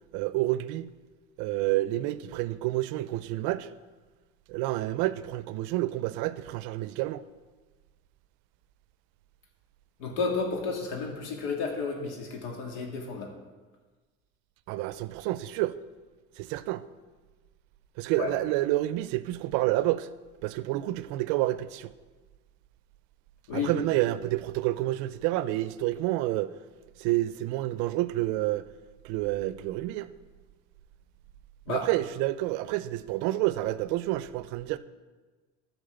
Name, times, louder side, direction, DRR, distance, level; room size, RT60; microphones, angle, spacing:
voice 1, 0.1-0.9 1.4-3.7 4.5-7.2 14.7-15.7 16.4-16.8 18.0-20.1 20.4-21.9 23.5-26.5 27.0-28.6 29.0-30.1 31.7-34.8, right 16 dB, 75° right, 0.5 m, -29 dB
voice 2, 10.0-13.3 18.2-18.3 23.5-23.8 31.7-31.9, left 4 dB, 90° left, 2.0 m, -32 dB
11.0 x 4.4 x 6.8 m
cardioid pair, 135°, 30 cm